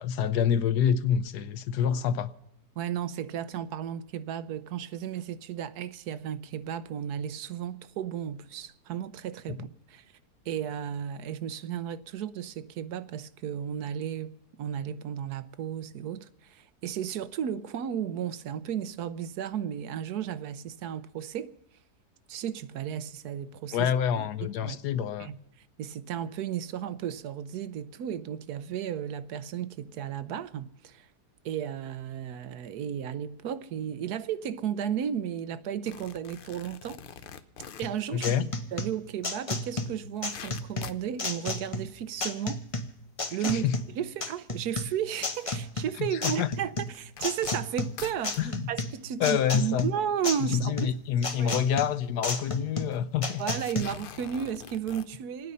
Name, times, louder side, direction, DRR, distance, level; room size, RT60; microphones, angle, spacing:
voice 1, 0.0-2.3 23.7-25.3 38.1-38.4 43.4-43.7 46.0-46.5 48.4-48.6 49.2-49.9 50.5-53.4, left 8 dB, 80° left, 1.4 m, -27 dB
voice 2, 2.7-10.1 10.4-21.5 22.3-23.9 24.2-24.8 25.2-25.4 25.8-31.1 31.4-37.0 37.8-38.3 38.7-42.7 43.3-51.0 51.4-51.6 53.4-55.5, right 9 dB, 75° right, 1.3 m, -34 dB
sound 1, 35.8-38.0 39.3-39.4 39.7-39.8 40.0-41.1 41.8-42.1 42.7-42.8 43.9-44.0 45.3-45.5 46.3-46.4 46.8-48.5 49.2-49.3 49.5-49.7 51.4-51.5 51.8-51.9 52.1-52.4 52.9-53.0 53.5-55.1, left 7 dB, 60° left, 0.5 m, -45 dB
sound 2, 37.8-53.8, left 2 dB, 25° left, 0.9 m, -33 dB
27.0 x 9.5 x 5.4 m
omnidirectional pair, 1.7 m